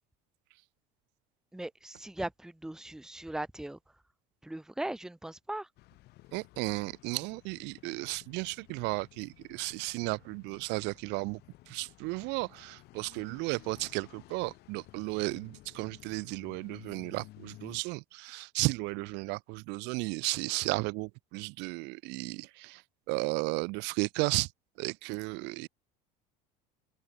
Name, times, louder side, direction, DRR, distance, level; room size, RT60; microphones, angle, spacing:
voice 1, 1.5-3.8 4.4-5.7, right 1 dB, 5° right, 0.8 m, -38 dB
sound 1, 5.8-17.8, left 18 dB, 60° left, 3.3 m, -55 dB
voice 2, 6.3-11.4 11.7-22.8 23.1-24.5 24.8-25.7, right 26 dB, 65° right, 0.7 m, -34 dB
cardioid pair, 130°, 19 cm